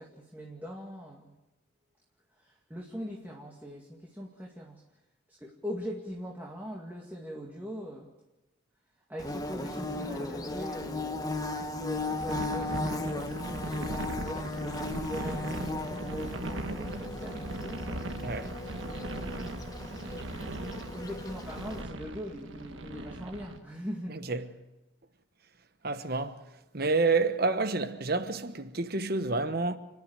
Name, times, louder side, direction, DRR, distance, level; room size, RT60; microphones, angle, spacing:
voice 1, 0.0-1.3 2.4-4.8 5.3-8.1 9.1-11.3 11.6-19.3 20.9-24.2, equal, 10° right, 2.1 m, -41 dB
Bird / Buzz, 9.2-21.8, left 2 dB, 20° left, 1.2 m, -36 dB
sound 1, 12.2-23.6, right 1 dB, 70° right, 1.4 m, -39 dB
voice 2, 25.8-26.4 26.7-29.8, right 3 dB, 50° right, 1.2 m, -28 dB
30.0 x 11.0 x 9.9 m
head